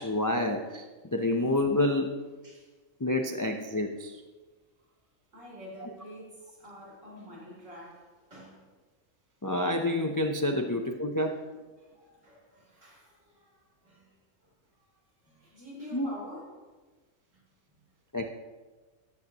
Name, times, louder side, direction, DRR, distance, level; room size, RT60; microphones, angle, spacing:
voice 1, 0.0-2.2 3.0-4.2 5.8-5.9 9.4-11.4 15.9-16.1 18.1-18.3, left 1 dB, 30° left, 0.3 m, -28 dB
voice 2, 5.3-8.7 10.6-10.7 11.2-11.3 11.8-14.1 14.4-14.5 14.8-15.0 15.2-16.5 17.3-17.4, left 1 dB, 65° right, 3.8 m, -48 dB
13.5 x 10.5 x 3.0 m
omnidirectional pair, 1.4 m